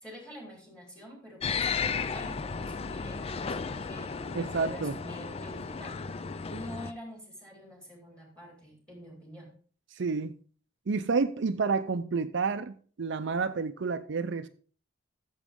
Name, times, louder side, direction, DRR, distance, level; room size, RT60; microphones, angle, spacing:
voice 1, 0.0-6.1 6.5-9.5, equal, 5° left, 3.8 m, -47 dB
sound 1, 1.4-6.9, left 5 dB, 30° left, 0.4 m, -34 dB
voice 2, 4.3-5.0 9.9-10.3 10.9-14.5, right 4 dB, 65° right, 0.5 m, -29 dB
13.5 x 7.2 x 3.7 m
head